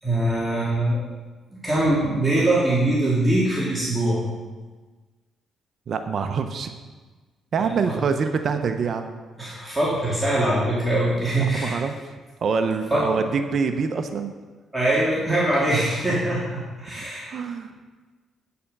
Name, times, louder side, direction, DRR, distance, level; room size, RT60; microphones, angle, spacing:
voice 1, 0.0-1.0 1.6-4.2 7.6-7.9 9.4-11.8 12.9-13.0 14.7-17.3, right 1 dB, 10° right, -8 dB, 2.8 m, -22 dB
voice 2, 5.9-6.7 7.5-9.2 11.5-12.0 12.4-14.3 17.0-17.1 17.3-17.7, right 5 dB, 55° right, 7 dB, 0.7 m, -25 dB
8.7 x 6.9 x 5.4 m, 1.3 s
cardioid pair, 90°, 0 cm